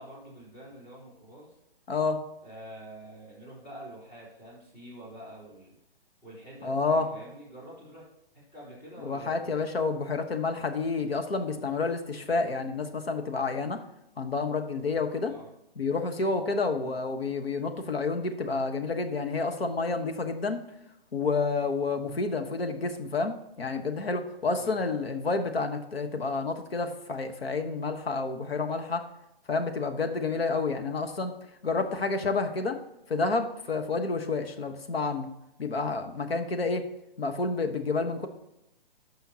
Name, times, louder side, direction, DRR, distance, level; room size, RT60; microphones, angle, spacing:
voice 1, 0.0-1.5 2.4-5.8 6.2-8.0 8.3-9.6 15.2-15.5 16.7-17.0 22.0-22.2 24.6-24.8, right 1 dB, 25° left, -6 dB, 3.3 m, -47 dB
voice 2, 1.9-2.2 6.6-7.1 9.0-13.8 14.2-15.3 15.8-20.6 21.1-29.0 29.5-31.3 31.6-32.8 33.1-35.3 35.6-36.9 37.2-38.3, left 3 dB, 80° left, 6 dB, 1.2 m, -29 dB
15.0 x 5.6 x 2.8 m, 0.88 s
hypercardioid pair, 140°, 30 cm